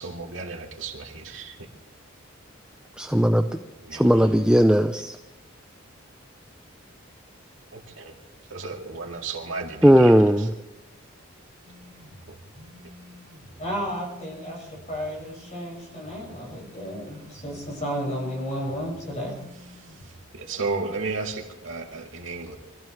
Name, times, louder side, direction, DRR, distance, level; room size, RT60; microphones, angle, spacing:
voice 1, 0.0-1.7 3.8-4.3 7.7-8.1 8.5-10.1 12.3-12.4 20.3-22.6, right 4 dB, 65° right, 1 dB, 2.4 m, -33 dB
voice 2, 3.0-3.6 3.9-5.2 9.8-10.5, equal, 5° right, 6 dB, 0.5 m, -17 dB
sound 1, 11.7-20.2, left 1 dB, 85° right, 3.0 m, -49 dB
voice 3, 13.6-19.4, equal, 35° left, -1 dB, 6.3 m, -32 dB
24.5 x 15.5 x 3.3 m, 1.0 s
head